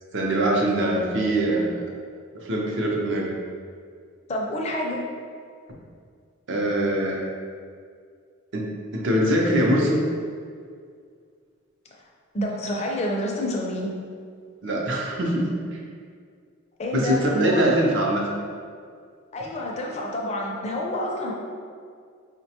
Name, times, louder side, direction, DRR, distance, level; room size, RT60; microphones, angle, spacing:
voice 1, 0.1-1.8 2.4-3.3 6.5-7.3 8.5-8.7 8.9-10.0 14.6-15.8 16.9-18.2, right 1 dB, 60° right, -2 dB, 0.6 m, -23 dB
voice 2, 4.3-5.0 12.3-13.9 16.8-17.8 19.3-21.3, equal, 30° left, -1 dB, 0.4 m, -28 dB
4.7 x 2.2 x 2.8 m, 2.1 s
head